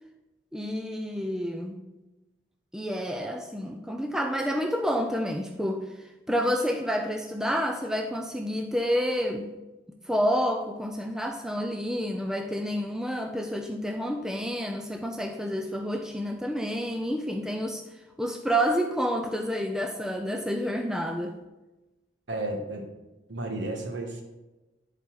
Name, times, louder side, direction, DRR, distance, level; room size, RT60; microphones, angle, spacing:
voice 1, 0.5-1.8 2.7-9.5 10.0-21.4, equal, 5° right, 3 dB, 0.4 m, -29 dB
voice 2, 22.3-22.8 23.3-24.2, right 2 dB, 65° right, 2 dB, 1.4 m, -32 dB
11.0 x 4.1 x 4.6 m, 1.1 s
head